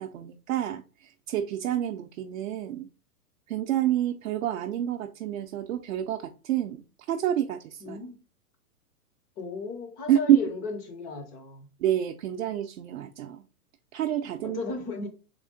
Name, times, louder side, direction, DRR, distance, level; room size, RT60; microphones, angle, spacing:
voice 1, 0.0-2.9 3.5-6.8 7.1-8.0 10.1-10.4 11.8-13.4 13.9-14.6, right 11 dB, 60° right, 0.6 m, -28 dB
voice 2, 7.8-8.2 9.4-11.7 14.4-15.1, left 4 dB, 15° left, 0.5 m, -35 dB
3.7 x 3.4 x 3.7 m
hypercardioid pair, 135°, 46 cm